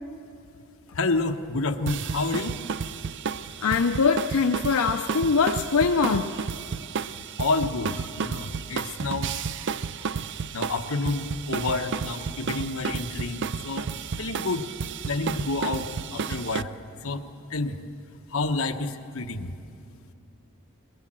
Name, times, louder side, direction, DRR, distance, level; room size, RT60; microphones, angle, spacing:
voice 1, 0.9-2.5 7.4-9.3 10.5-14.6 15.1-16.7 17.0-17.2 17.5-17.8 18.3-19.5, left 3 dB, 70° left, 5 dB, 1.2 m, -29 dB
sound 1, 1.9-16.6, right 5 dB, 55° right, 0.5 m, -32 dB
voice 2, 3.6-6.3, left 5 dB, 85° left, 6 dB, 0.6 m, -22 dB
22.5 x 20.5 x 7.6 m, 2.7 s
head